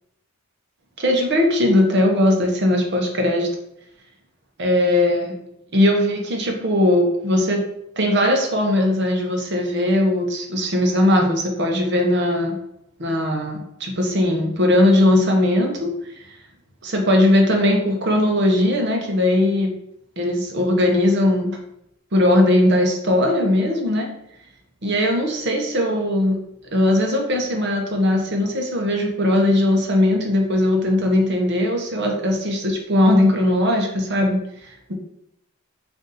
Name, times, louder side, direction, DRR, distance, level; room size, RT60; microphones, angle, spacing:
voice 1, 1.0-3.5 4.6-5.3 5.7-7.6 8.0-12.6 13.0-15.9 16.8-19.7 20.2-21.6 22.1-24.1 24.8-26.4 26.7-34.9, left 1 dB, 50° right, 2 dB, 0.8 m, -19 dB
4.1 x 2.6 x 3.7 m, 0.80 s
head